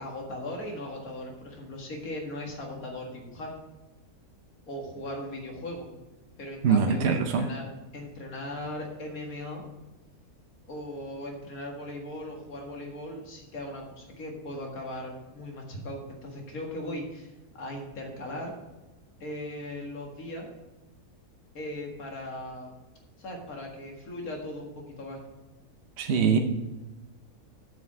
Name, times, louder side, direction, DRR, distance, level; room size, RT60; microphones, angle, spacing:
voice 1, 0.0-3.5 4.7-5.9 6.4-9.6 10.7-18.5 19.2-20.5 21.5-22.7 23.2-25.2, left 1 dB, 65° left, 0 dB, 2.3 m, -38 dB
voice 2, 6.6-7.5 26.0-26.4, right 6 dB, 55° right, 5 dB, 0.9 m, -23 dB
8.7 x 5.7 x 7.4 m, 1.1 s
omnidirectional pair, 1.6 m